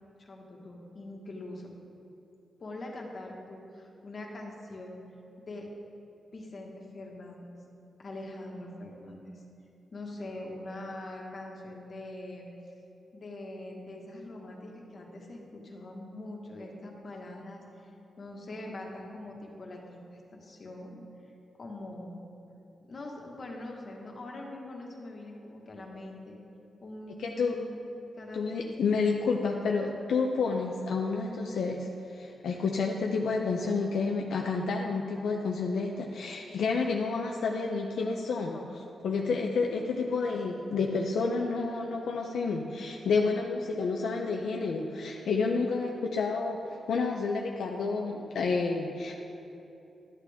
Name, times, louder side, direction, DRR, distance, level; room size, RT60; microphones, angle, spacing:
voice 1, 0.2-1.7 2.6-5.0 5.4-5.7 6.3-7.5 8.0-9.4 9.9-12.5 13.1-17.9 18.2-20.0 20.3-21.0 21.6-22.2 22.9-26.4 26.8-27.8 28.2-28.8 38.5-38.7, left 2 dB, 50° left, 0 dB, 1.5 m, -43 dB
voice 2, 27.2-27.6 28.3-38.6 39.0-49.1, left 4 dB, 80° left, 0 dB, 0.6 m, -30 dB
11.5 x 8.3 x 3.5 m, 2.9 s
cardioid pair, 95°, 0 cm